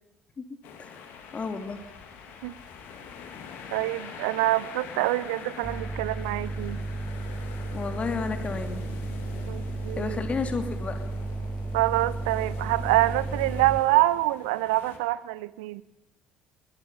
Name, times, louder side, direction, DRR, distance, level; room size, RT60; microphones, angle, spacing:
sound 1, 0.6-15.0, left 6 dB, 60° left, 3.1 m, -44 dB
voice 1, 1.3-1.8 7.7-8.8 10.0-11.0, left 4 dB, 35° left, 7 dB, 2.9 m, -32 dB
voice 2, 3.7-6.8 9.5-10.2 11.7-15.8, right 18 dB, 70° right, 18 dB, 0.7 m, -26 dB
sound 2, 5.6-13.8, right 2 dB, 20° right, 1.7 m, -33 dB
23.0 x 20.5 x 5.7 m, 0.92 s
figure-of-eight pair, 55°, 4 cm